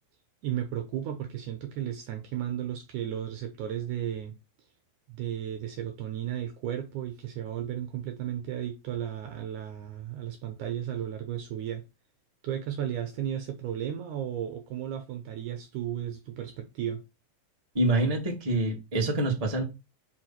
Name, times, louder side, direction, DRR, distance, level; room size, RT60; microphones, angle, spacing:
voice 1, 0.4-4.4 5.1-11.8 12.4-17.0, right 10 dB, 70° right, 2.1 m, -34 dB
voice 2, 17.7-19.6, right 2 dB, 15° right, 1.4 m, -26 dB
5.6 x 4.8 x 5.8 m
omnidirectional pair, 4.1 m